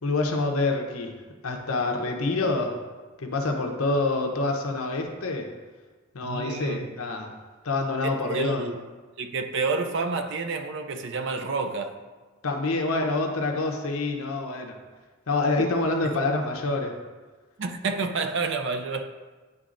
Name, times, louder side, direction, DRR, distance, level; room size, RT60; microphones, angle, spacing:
voice 1, 0.0-1.1 1.4-2.8 3.2-5.5 6.1-7.3 7.6-8.6 12.4-14.7 15.3-17.0, left 2 dB, 80° left, 0.8 m, -26 dB
voice 2, 6.2-6.9 8.0-8.8 9.2-12.0 17.6-19.1, right 4 dB, 55° right, 0.4 m, -29 dB
9.8 x 4.0 x 2.5 m
head